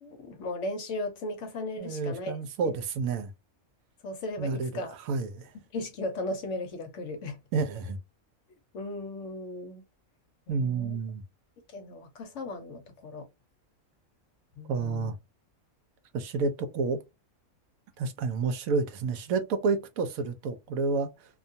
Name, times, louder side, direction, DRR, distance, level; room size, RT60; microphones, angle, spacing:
voice 1, 0.0-2.4 2.6-2.7 4.0-4.9 5.7-7.4 8.7-9.8 10.5-11.0 11.7-13.3 14.6-15.1, left 2 dB, 65° left, 0.8 m, -36 dB
voice 2, 1.8-3.3 4.4-4.7 5.1-5.5 7.5-8.0 10.5-11.2 14.7-15.1 16.1-17.0 18.0-21.4, right 4 dB, 75° right, 1.0 m, -30 dB
2.4 x 2.3 x 2.6 m
omnidirectional pair, 1.5 m